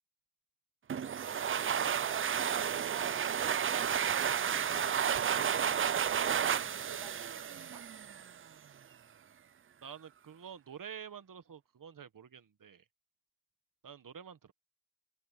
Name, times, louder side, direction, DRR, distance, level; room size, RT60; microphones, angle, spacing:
sound 1, 0.9-8.4, right 8 dB, 35° right, 0.4 m, -32 dB
voice 1, 1.5-7.9, right 9 dB, 75° right, 1.2 m, -53 dB
voice 2, 9.8-12.8 13.8-14.5, right 8 dB, 55° right, 1.4 m, -48 dB
wide cardioid pair, 95°, 39 cm